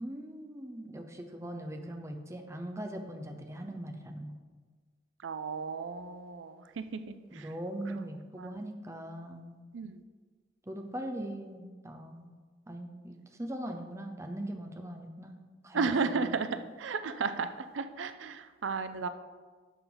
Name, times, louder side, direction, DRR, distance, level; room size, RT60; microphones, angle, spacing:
voice 1, 0.0-4.3 7.3-9.6 10.7-12.3 12.7-15.4 15.6-16.3, right 1 dB, 15° right, 4 dB, 0.7 m, -40 dB
voice 2, 5.2-7.5 8.4-8.5 9.7-10.0 15.7-19.1, right 4 dB, 85° right, 11 dB, 0.5 m, -34 dB
10.5 x 6.7 x 3.9 m, 1.5 s
head